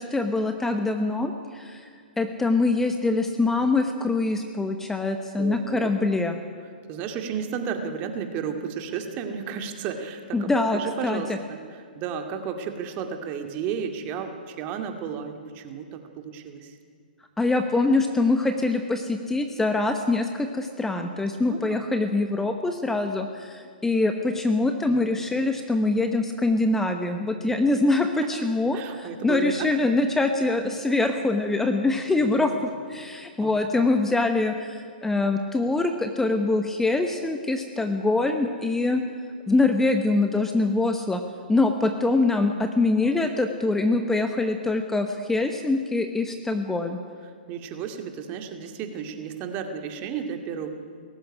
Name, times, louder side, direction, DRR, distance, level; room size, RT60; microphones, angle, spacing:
voice 1, 0.0-1.9 2.2-6.4 10.3-11.4 17.4-32.5 32.9-39.0 39.5-41.2 41.5-47.0, left 2 dB, 5° left, 6 dB, 1.1 m, -24 dB
voice 2, 5.4-5.9 6.9-16.8 21.5-21.8 24.9-25.0 27.9-28.3 28.7-29.7 30.4-30.8 32.2-32.6 33.4-33.8 43.0-43.1 47.5-50.7, right 7 dB, 30° right, 5 dB, 2.3 m, -33 dB
18.5 x 15.0 x 10.0 m, 2.1 s
hypercardioid pair, 130°, 5 cm